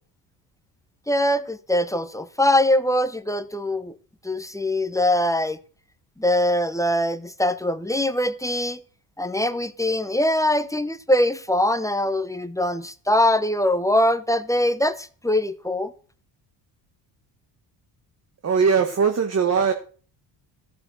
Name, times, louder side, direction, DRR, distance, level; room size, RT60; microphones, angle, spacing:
voice 1, 1.1-3.9 4.2-5.6 6.2-8.8 9.2-15.9, left 1 dB, 5° left, 0.8 m, -22 dB
voice 2, 18.4-19.7, right 6 dB, 35° right, 1.3 m, -20 dB
14.0 x 6.9 x 6.3 m
cardioid pair, 110°, 46 cm